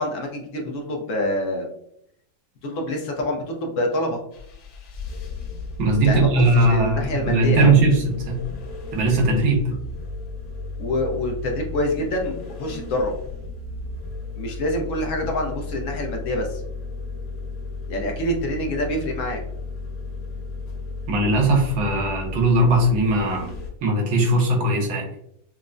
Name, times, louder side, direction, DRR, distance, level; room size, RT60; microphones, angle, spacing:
voice 1, 0.0-1.7 2.6-4.2 6.0-7.8 10.8-13.1 14.4-16.6 17.9-19.4, left 1 dB, 60° left, 1 dB, 0.8 m, -26 dB
sound 1, 4.3-23.7, left 3 dB, 85° left, 1.6 m, -34 dB
voice 2, 5.8-8.4 8.9-9.6 21.1-23.5 23.8-25.1, right 2 dB, 85° right, 0 dB, 1.7 m, -19 dB
5.7 x 2.1 x 2.5 m, 0.71 s
omnidirectional pair, 2.0 m